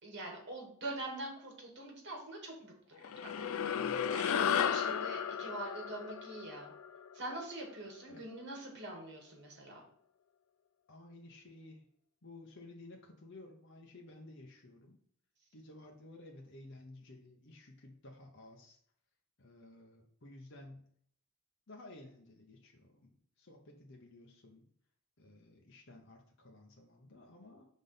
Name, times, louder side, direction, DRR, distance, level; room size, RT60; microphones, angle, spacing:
voice 1, 0.0-2.8 3.1-6.7 7.1-9.9, right 2 dB, 50° right, 0 dB, 2.0 m, -44 dB
sound 1, 3.0-7.7, left 8 dB, 75° left, 0.4 m, -34 dB
voice 2, 10.9-11.9 12.2-15.0 15.5-18.8 19.4-20.9 21.7-24.7 25.2-27.7, left 2 dB, 55° left, 1 dB, 0.9 m, -54 dB
5.1 x 3.8 x 5.5 m, 0.63 s
head